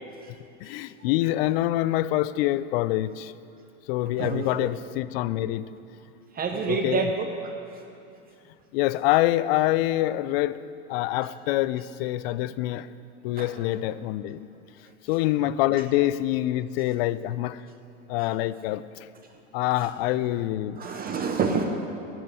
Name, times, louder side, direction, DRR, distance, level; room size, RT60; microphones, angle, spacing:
voice 1, 0.6-3.3 3.9-5.7 6.7-7.0 8.7-10.6 10.9-12.9 13.2-14.5 15.1-17.6 18.1-18.8 19.5-21.0, left 15 dB, 50° left, 16 dB, 0.4 m, -25 dB
voice 2, 4.2-4.7 6.3-7.5 13.4-13.5 15.4-15.5 20.8-21.6, right 5 dB, 25° right, 4 dB, 0.7 m, -28 dB
10.0 x 6.2 x 8.9 m, 2.7 s
hypercardioid pair, 110°, 38 cm